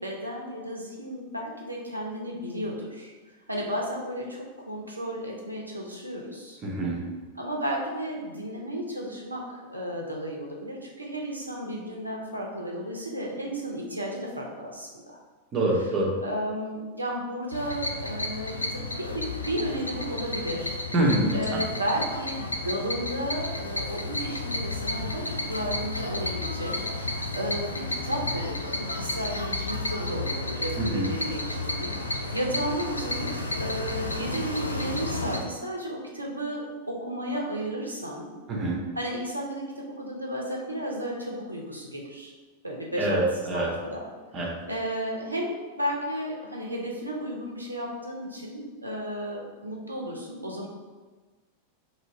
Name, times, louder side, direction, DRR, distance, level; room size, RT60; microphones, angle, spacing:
voice 1, 0.0-3.1 3.5-6.6 7.3-15.2 16.2-20.7 21.3-38.3 38.9-42.3 42.6-44.0 44.4-50.7, equal, 85° right, -2 dB, 0.8 m, -33 dB
voice 2, 6.6-7.0 15.5-16.1 20.9-21.6 30.8-31.1 38.5-38.8 43.0-43.7 44.3-44.5, right 1 dB, 30° right, -3 dB, 1.1 m, -25 dB
sound 1, 17.5-35.4, left 2 dB, 85° left, 0.4 m, -32 dB
3.1 x 2.9 x 4.3 m, 1.3 s
figure-of-eight pair, 90°, 0 cm